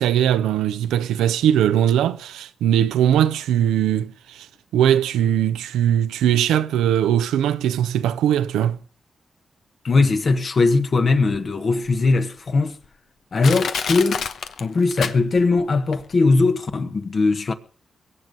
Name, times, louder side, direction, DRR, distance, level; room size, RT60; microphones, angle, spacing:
voice 1, 0.0-4.5 4.7-8.8, right 10 dB, 85° right, 0.6 m, -20 dB
voice 2, 9.8-12.8 13.3-14.2 14.6-17.5, left 3 dB, 55° left, 1.5 m, -19 dB
Crushing, 11.3-11.4 12.1-12.2 12.8-12.9 13.4-15.6 15.9-16.0, left 6 dB, 75° left, 0.9 m, -28 dB
22.5 x 7.9 x 5.4 m
supercardioid pair, 40°, 0 cm